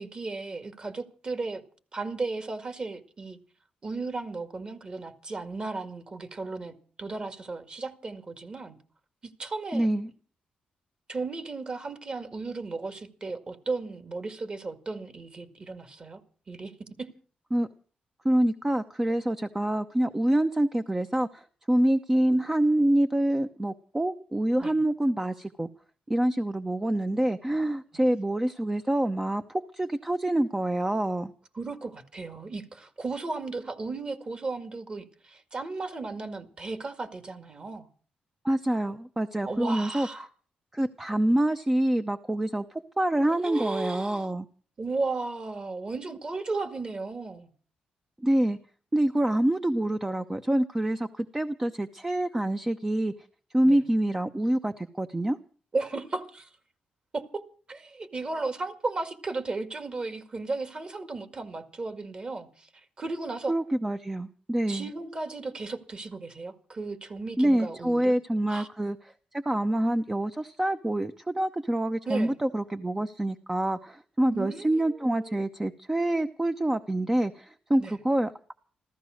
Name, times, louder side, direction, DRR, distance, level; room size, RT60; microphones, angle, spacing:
voice 1, 0.0-1.6 1.9-3.4 3.8-8.8 9.2-9.9 11.1-16.2 16.5-17.1 24.6-24.8 31.5-37.9 39.4-40.3 43.3-44.3 44.8-47.5 53.6-53.8 55.7-56.5 57.1-57.4 57.7-62.7 63.0-63.6 64.7-68.1 68.5-68.7 72.1-72.4 74.3-75.4 77.8-78.0, right 3 dB, 35° right, 2.1 m, -35 dB
voice 2, 9.7-10.1 17.5-17.7 18.2-25.7 26.1-31.3 38.4-40.1 40.7-44.5 48.2-48.6 48.9-53.1 53.5-55.4 63.5-64.9 67.4-69.0 69.3-78.3, right 1 dB, 15° right, 0.8 m, -26 dB
14.5 x 14.5 x 6.4 m
cardioid pair, 95°, 3 cm